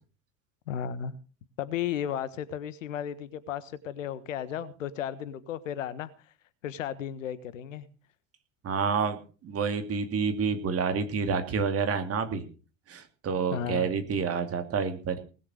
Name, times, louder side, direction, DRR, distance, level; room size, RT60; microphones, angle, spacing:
voice 1, 0.7-1.2 1.6-6.1 6.6-7.9 13.5-13.9, left 9 dB, 70° left, 17 dB, 1.4 m, -34 dB
voice 2, 8.6-12.4 12.9-15.2, right 5 dB, 35° right, 7 dB, 2.8 m, -29 dB
19.5 x 7.3 x 6.4 m, 0.36 s
figure-of-eight pair, 70°, 40 cm